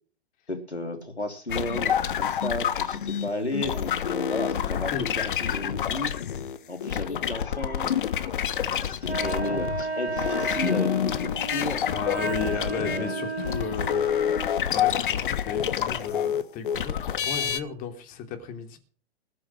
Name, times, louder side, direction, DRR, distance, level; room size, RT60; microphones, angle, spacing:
voice 1, 0.5-6.1 6.7-8.0 8.6-11.9 12.4-13.3, left 2 dB, 85° left, 3.5 m, -33 dB
sound 1, 1.5-9.8 10.1-17.6, left 9 dB, 50° left, 1.3 m, -28 dB
Wind instrument woodwind instrument, 9.0-14.6, right 3 dB, 80° right, 2.1 m, -33 dB
voice 2, 11.9-14.1 14.3-18.8, left 7 dB, 25° left, 3.0 m, -35 dB
20.0 x 7.7 x 6.3 m
figure-of-eight pair, 115°, 32 cm